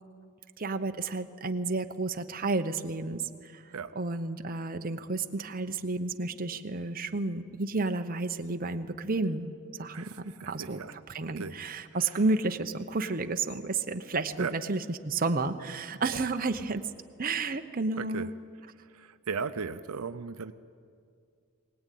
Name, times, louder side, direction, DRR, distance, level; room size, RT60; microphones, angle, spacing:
voice 1, 0.6-9.5 9.8-16.8 17.2-18.3, right 3 dB, 40° right, 7 dB, 0.9 m, -31 dB
voice 2, 9.9-11.0 11.3-11.6 12.0-12.2 14.4-14.5 18.0-18.3 18.8-20.5, right 5 dB, 80° right, 11 dB, 0.6 m, -37 dB
22.5 x 18.0 x 9.3 m, 2.3 s
head